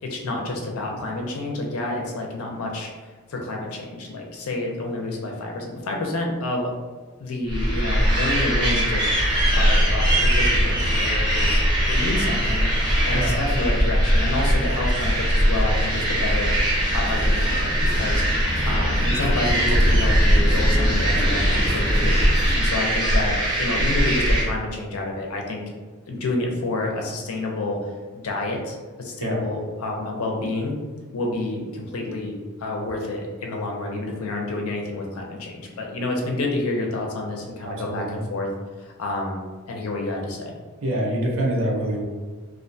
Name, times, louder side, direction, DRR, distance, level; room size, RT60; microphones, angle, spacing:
voice 1, 0.0-2.9 3.3-6.7 7.2-9.1 9.5-11.6 11.9-12.7 13.0-16.5 16.9-18.2 18.6-25.6 26.1-27.8 28.2-30.8 31.1-38.5 38.8-39.4 39.7-40.5, left 2 dB, 75° left, 0 dB, 0.5 m, -29 dB
sound 1, 7.5-24.4, equal, 20° right, 0.7 m, -21 dB
sound 2, 9.1-22.6, equal, 45° left, 0.9 m, -28 dB
voice 2, 37.6-38.2 40.8-42.0, right 1 dB, 65° right, -1 dB, 0.5 m, -25 dB
2.4 x 2.1 x 2.6 m, 1.4 s
head